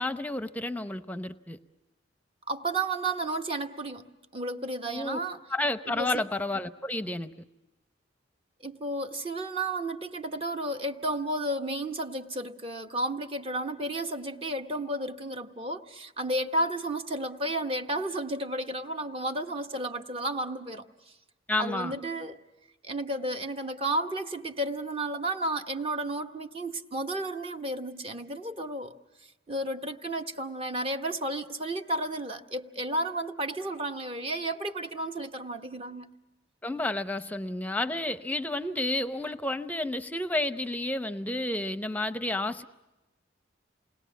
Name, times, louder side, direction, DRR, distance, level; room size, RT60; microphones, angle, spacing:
voice 1, 0.0-1.6 4.9-5.2 5.5-7.3 21.5-21.9 36.6-42.6, left 2 dB, 10° left, 11 dB, 0.7 m, -31 dB
voice 2, 2.5-5.4 5.9-6.2 8.6-20.8 21.6-22.4 22.8-28.9 29.5-36.2, right 1 dB, 30° right, 6 dB, 1.0 m, -32 dB
28.0 x 20.5 x 7.1 m, 1.0 s
head